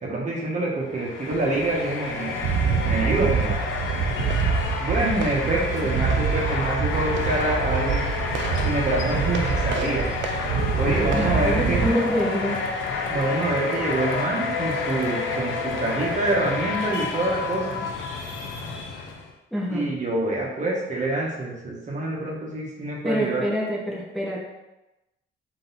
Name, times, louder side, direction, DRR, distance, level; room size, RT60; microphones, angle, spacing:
voice 1, 0.0-2.3 2.8-3.5 4.8-8.1 8.6-10.3 10.8-11.8 13.1-17.8 19.7-23.4, right 2 dB, 40° right, -3 dB, 1.2 m, -26 dB
sound 1, 0.8-19.3, left 4 dB, 75° left, 0.7 m, -29 dB
sound 2, 2.4-11.9, right 6 dB, 70° right, 0.4 m, -26 dB
voice 2, 5.5-6.0 11.1-12.6 19.5-19.9 23.0-24.4, equal, ahead, -5 dB, 0.8 m, -26 dB
3.8 x 2.9 x 4.0 m, 0.98 s
cardioid pair, 90°, 20 cm